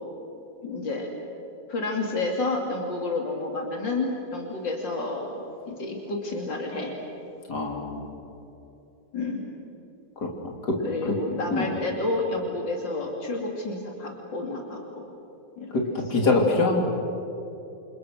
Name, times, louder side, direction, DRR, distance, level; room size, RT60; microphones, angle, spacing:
voice 1, 0.6-1.1 1.7-5.3 5.7-6.9 9.1-9.5 10.8-15.1 15.6-15.7, left 2 dB, 85° left, 1 dB, 3.2 m, -30 dB
voice 2, 7.5-8.0 10.2-10.3 10.6-10.8 11.1-11.2 11.5-11.7 15.7-16.8, left 3 dB, 60° left, 1 dB, 3.7 m, -24 dB
28.5 x 28.0 x 6.5 m, 2.9 s
omnidirectional pair, 1.9 m